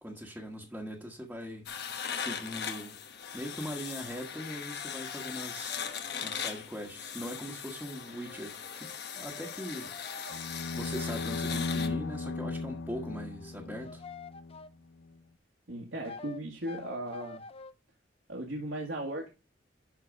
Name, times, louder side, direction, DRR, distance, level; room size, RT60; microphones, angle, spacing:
voice 1, 0.0-1.7 2.1-2.9 3.3-5.7 6.2-9.9 10.7-14.0, equal, 5° right, 1.3 m, -41 dB
sound 1, 1.7-11.9, left 7 dB, 65° left, 1.1 m, -39 dB
sound 2, 4.8-6.4 8.0-10.4 13.4-14.7 16.1-17.7, left 4 dB, 30° left, 0.5 m, -48 dB
sound 3, 10.3-14.6, left 3 dB, 85° left, 0.7 m, -36 dB
voice 2, 15.7-17.4 18.3-19.3, right 1 dB, 75° right, 1.8 m, -37 dB
11.5 x 4.0 x 5.0 m
head